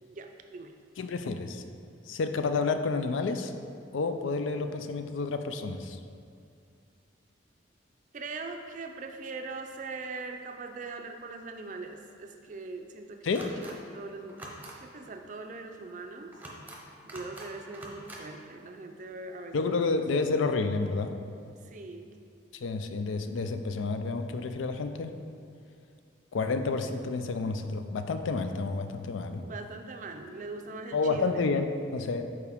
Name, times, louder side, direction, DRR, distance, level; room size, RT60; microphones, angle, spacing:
voice 1, 0.0-0.7 8.1-13.3 13.6-16.3 17.0-20.5 21.6-22.1 29.4-31.5, right 3 dB, 40° right, 5 dB, 0.4 m, -41 dB
voice 2, 1.0-1.6 2.1-3.5 3.9-6.0 13.2-13.5 19.5-21.1 22.5-25.1 26.3-29.4 30.9-32.2, left 4 dB, 85° left, 8 dB, 0.4 m, -30 dB
sound 1, 13.3-13.7 14.3-14.7 16.3-16.8 17.1-17.5 17.7-18.2, right 1 dB, 10° right, 0.7 m, -44 dB
6.9 x 4.8 x 3.5 m, 2.3 s
head